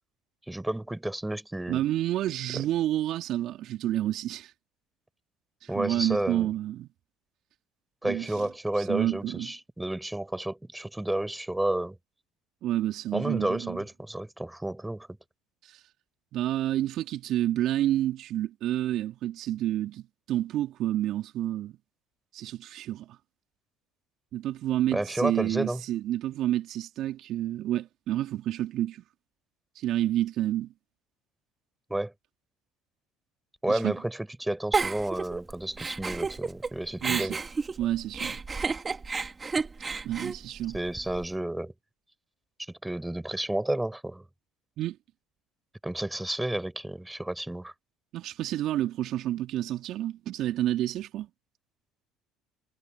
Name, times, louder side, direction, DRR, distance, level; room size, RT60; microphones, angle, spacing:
voice 1, 0.5-1.8 2.5-2.6 5.7-6.5 8.0-12.0 13.1-15.1 24.9-25.8 31.9-32.1 33.6-37.4 40.7-41.7 42.7-44.2 45.8-47.7, right 1 dB, 10° right, 4.7 m, -31 dB
voice 2, 1.7-4.5 5.6-6.9 8.0-8.3 8.8-9.5 12.6-13.8 15.6-15.8 16.3-21.8 22.3-23.2 24.3-29.0 29.7-30.7 33.7-33.9 37.0-37.3 37.8-38.4 40.0-40.8 44.8-45.0 48.1-51.3, right 13 dB, 60° right, 2.7 m, -29 dB
Giggle, 34.7-36.7 37.0-41.2, right 4 dB, 25° right, 2.9 m, -31 dB
hypercardioid pair, 65°, 0 cm